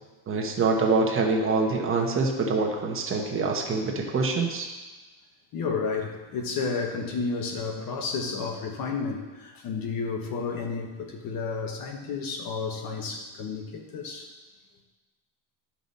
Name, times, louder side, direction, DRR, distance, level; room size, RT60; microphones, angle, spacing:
voice 1, 0.3-4.7, right 3 dB, 30° right, 1 dB, 1.0 m, -25 dB
voice 2, 5.5-14.3, left 4 dB, 50° left, 4 dB, 1.3 m, -31 dB
12.0 x 5.8 x 4.2 m, 1.2 s
cardioid pair, 155°, 44 cm